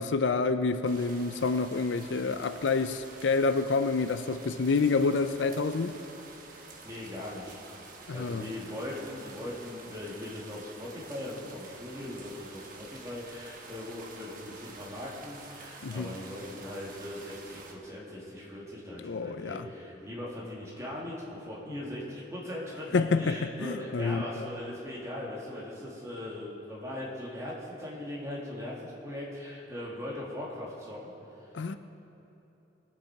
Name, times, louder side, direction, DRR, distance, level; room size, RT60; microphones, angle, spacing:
voice 1, 0.0-5.9 8.1-8.5 15.8-16.1 19.0-19.7 22.9-24.5 31.5-31.8, left 4 dB, 75° left, 10 dB, 0.5 m, -28 dB
sound 1, 0.8-17.7, right 3 dB, 45° right, 1.3 m, -49 dB
voice 2, 6.6-7.6 8.1-31.1, left 1 dB, 15° right, -5 dB, 2.3 m, -40 dB
20.0 x 7.4 x 4.7 m, 3.0 s
head